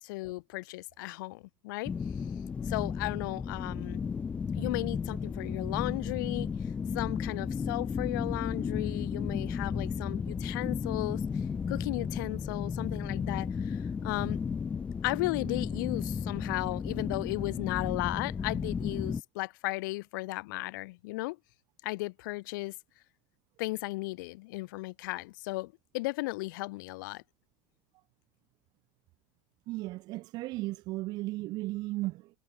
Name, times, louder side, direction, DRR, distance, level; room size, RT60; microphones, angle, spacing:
voice 1, 0.0-1.9 2.6-4.0 4.6-6.5 6.9-11.2 11.7-14.4 15.0-21.4 21.8-22.7 23.6-27.2, left 22 dB, 65° left, 1.7 m, -35 dB
sound 1, 1.8-19.2, left 6 dB, 10° left, 0.4 m, -34 dB
voice 2, 29.7-32.3, right 19 dB, 35° right, 1.8 m, -35 dB
supercardioid pair, 175°, 11 cm